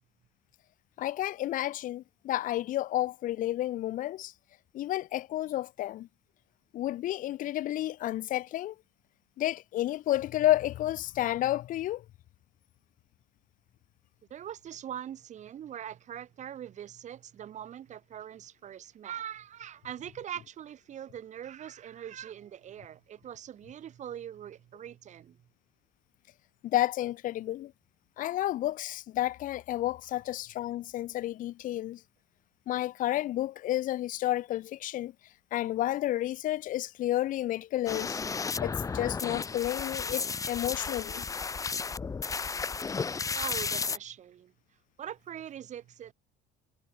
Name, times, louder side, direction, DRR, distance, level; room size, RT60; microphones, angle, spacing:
voice 1, 1.0-4.3 4.7-6.1 6.7-8.7 9.4-12.0 26.6-27.7 28.2-32.0 32.7-35.1 35.5-38.2 38.6-41.2, left 14 dB, 45° left, 0.5 m, -31 dB
voice 2, 14.3-25.4 43.3-44.5 45.0-46.1, right 10 dB, 40° right, 1.3 m, -42 dB
sound 1, 37.9-44.0, left 5 dB, 15° left, 0.9 m, -33 dB
cardioid pair, 160°, 19 cm